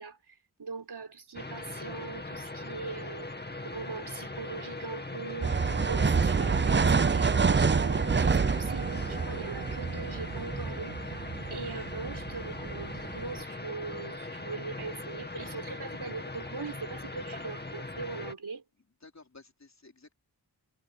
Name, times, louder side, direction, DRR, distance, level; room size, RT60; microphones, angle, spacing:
voice 1, 0.0-18.6, right 4 dB, 70° right, 4.3 m, -41 dB
sound 1, 1.3-18.3, left 2 dB, 25° left, 2.1 m, -40 dB
sound 2, 5.4-13.4, right 5 dB, 30° right, 0.5 m, -27 dB
voice 2, 18.8-20.1, left 3 dB, 40° left, 3.9 m, -55 dB
wide cardioid pair, 90°, 41 cm